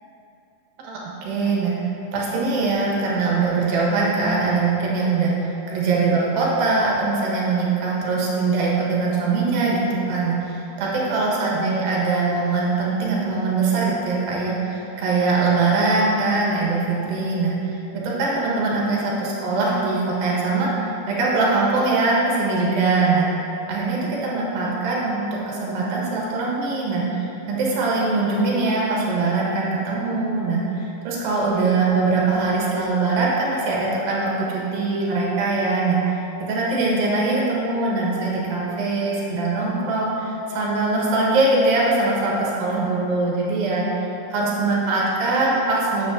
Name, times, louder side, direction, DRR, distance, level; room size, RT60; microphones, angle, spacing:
voice 1, 0.8-1.8 2.1-9.8 10.1-17.5 18.0-23.3 23.7-36.0 36.4-43.9 44.3-46.1, right 3 dB, 70° right, -4 dB, 2.9 m, -22 dB
9.0 x 7.9 x 2.6 m, 3.0 s
omnidirectional pair, 4.6 m